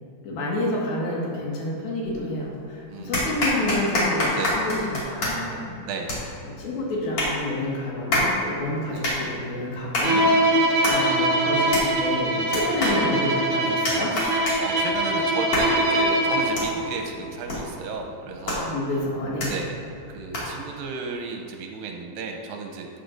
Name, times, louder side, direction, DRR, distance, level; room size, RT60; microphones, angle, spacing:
voice 1, 0.2-5.7 6.4-10.3 10.6-14.1 18.6-19.6, left 1 dB, 75° left, -4 dB, 3.5 m, -29 dB
sound 1, 2.1-2.6 3.1-20.7, left 1 dB, 45° left, 2.7 m, -30 dB
voice 2, 2.9-3.5 4.4-4.6 5.9-6.1 8.9-9.1 10.9-11.1 12.9-13.1 14.1-18.7 19.4-19.8 20.1-22.9, right 4 dB, 80° right, 2 dB, 2.3 m, -34 dB
Bowed string instrument, 10.0-16.7, right 1 dB, 65° right, 1.5 m, -22 dB
13.0 x 8.5 x 2.6 m, 2.8 s
omnidirectional pair, 4.3 m